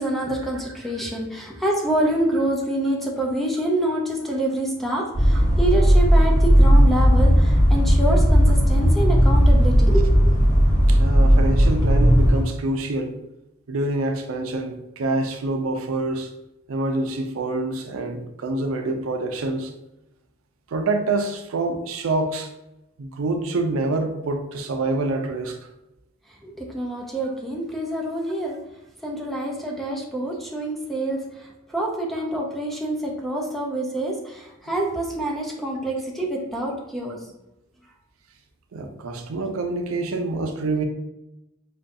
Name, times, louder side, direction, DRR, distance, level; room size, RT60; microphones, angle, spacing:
voice 1, 0.0-10.4 26.4-28.6 29.0-37.2, right 1 dB, ahead, -1 dB, 0.5 m, -26 dB
sound 1, 5.1-12.4, equal, 35° left, 1.0 m, -16 dB
voice 2, 10.9-13.2 13.7-16.3 16.7-19.7 20.7-22.5 23.0-25.7 38.7-40.8, right 2 dB, 75° right, 5 dB, 0.5 m, -26 dB
5.1 x 2.3 x 2.6 m, 0.92 s
head